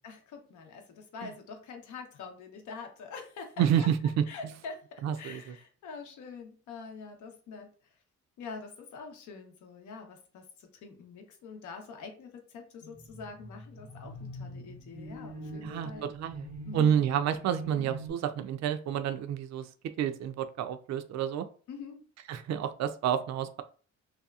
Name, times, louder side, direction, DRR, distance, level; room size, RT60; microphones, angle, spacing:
voice 1, 0.0-3.9 4.3-7.7 8.4-16.1 16.6-17.0 17.8-17.9 21.7-22.0, left 5 dB, 75° left, 4 dB, 0.7 m, -45 dB
voice 2, 3.6-4.2 5.0-5.5 15.6-16.5 16.7-19.7 20.0-21.5 22.3-23.6, right 9 dB, 60° right, 9 dB, 0.4 m, -29 dB
sound 1, 12.8-18.1, right 1 dB, 20° left, 1.0 m, -44 dB
2.8 x 2.2 x 2.3 m, 0.41 s
cardioid pair, 90°, 30 cm